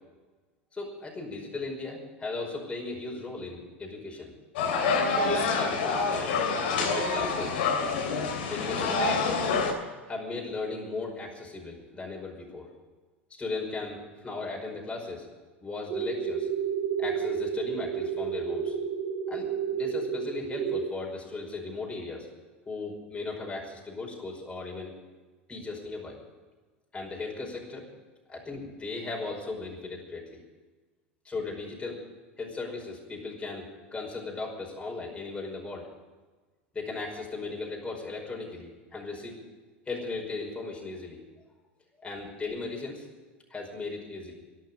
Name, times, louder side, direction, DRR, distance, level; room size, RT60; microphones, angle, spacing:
voice 1, 0.7-4.3 5.1-6.4 6.7-7.7 8.5-9.3 10.1-12.7 13.3-15.3 15.6-16.5 17.0-18.8 19.3-22.3 22.7-24.9 25.5-26.2 26.9-27.9 28.3-30.4 31.2-32.0 32.4-35.9 36.7-39.4 39.9-41.2 42.0-43.1 43.5-44.3, left 3 dB, 15° left, -1 dB, 5.3 m, -37 dB
sound 1, 4.6-9.7, left 4 dB, 65° left, 3.2 m, -27 dB
sound 2, 15.9-20.9, right 7 dB, 45° right, 2.4 m, -31 dB
12.5 x 11.5 x 9.9 m, 1.3 s
hypercardioid pair, 80°, 6 cm